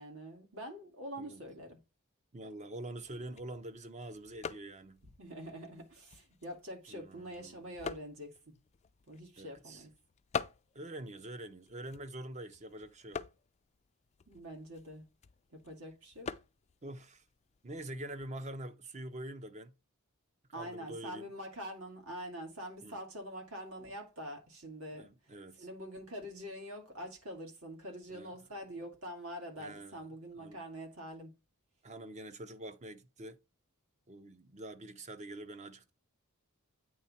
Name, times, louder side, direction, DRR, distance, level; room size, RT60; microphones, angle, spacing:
voice 1, 0.0-1.8 5.2-8.5 9.1-9.9 14.3-15.0 15.5-16.3 20.5-31.3, equal, 70° right, 2.5 m, -45 dB
voice 2, 2.3-5.0 6.9-7.7 9.4-9.9 10.7-13.2 16.8-17.2 17.6-19.7 20.5-21.3 22.8-23.0 24.9-25.7 28.1-28.4 29.5-30.0 30.4-30.6 31.8-33.4 34.1-35.9, right 1 dB, 30° right, 0.7 m, -45 dB
sound 1, 2.9-18.4, left 6 dB, 30° left, 0.4 m, -47 dB
8.7 x 3.5 x 4.2 m
head